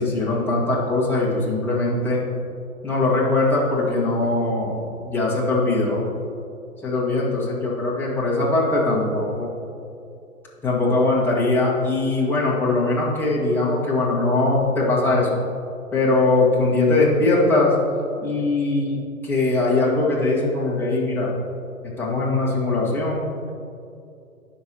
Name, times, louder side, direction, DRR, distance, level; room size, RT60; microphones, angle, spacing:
voice 1, 0.0-2.2 2.8-6.0 6.8-9.5 10.6-15.4 15.9-17.7 18.2-21.3 22.0-23.5, left 2 dB, 5° left, -7 dB, 1.6 m, -21 dB
17.0 x 6.3 x 2.9 m, 2.5 s
figure-of-eight pair, 130°, 43 cm